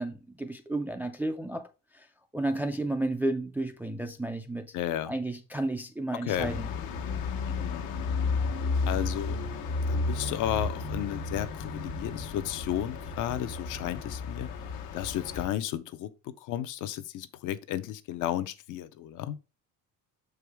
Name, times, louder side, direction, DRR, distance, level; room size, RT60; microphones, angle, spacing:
voice 1, 0.0-1.7 1.9-2.1 2.3-4.7 5.1-6.7, right 2 dB, 5° right, 0.3 m, -32 dB
voice 2, 4.7-5.1 6.1-6.5 7.5-7.9 8.9-9.4 9.9-14.5 14.9-19.4, left 12 dB, 60° left, 0.7 m, -33 dB
sound 1, 6.3-15.5, left 4 dB, 90° left, 1.3 m, -33 dB
6.9 x 4.8 x 3.4 m
cardioid pair, 170°, 35 cm